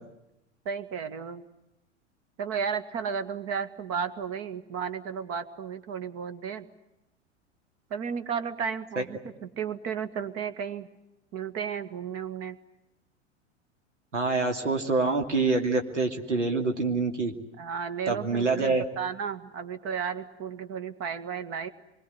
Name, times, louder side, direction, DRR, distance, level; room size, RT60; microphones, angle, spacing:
voice 1, 0.7-1.4 2.4-6.7 7.9-10.9 11.3-12.6 17.6-21.7, right 7 dB, 40° right, 10 dB, 2.0 m, -33 dB
voice 2, 14.1-17.3 18.1-18.8, right 3 dB, 85° right, 3 dB, 2.8 m, -26 dB
27.0 x 22.5 x 9.6 m, 0.90 s
figure-of-eight pair, 85°, 35 cm